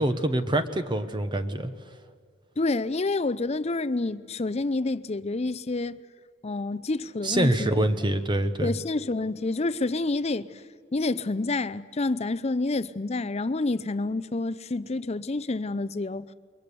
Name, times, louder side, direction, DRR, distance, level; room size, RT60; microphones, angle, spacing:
voice 1, 0.0-1.7 7.2-8.7, right 1 dB, 25° right, 1.1 m, -25 dB
voice 2, 2.6-6.0 6.4-7.9 8.6-10.5 10.9-16.2, left 2 dB, 30° left, 0.6 m, -28 dB
28.0 x 22.5 x 6.9 m
head